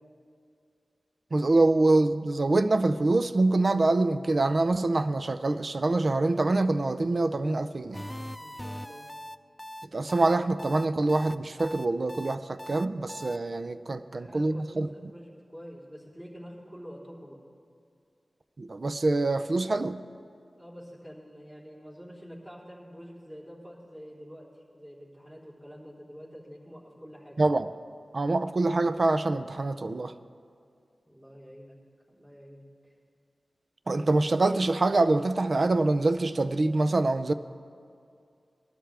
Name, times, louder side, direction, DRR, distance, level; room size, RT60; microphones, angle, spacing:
voice 1, 1.3-8.0 9.9-14.9 18.6-20.0 27.4-27.7 28.1-30.1 33.9-37.3, right 2 dB, 55° right, 11 dB, 0.5 m, -25 dB
sound 1, 7.9-13.4, equal, 10° left, 0.4 m, -41 dB
voice 2, 8.4-9.1 13.9-17.4 20.5-27.4 31.0-31.8 32.1-32.9, equal, 20° right, -6 dB, 3.8 m, -47 dB
21.0 x 12.5 x 3.4 m, 2.3 s
wide cardioid pair, 65°, 0 cm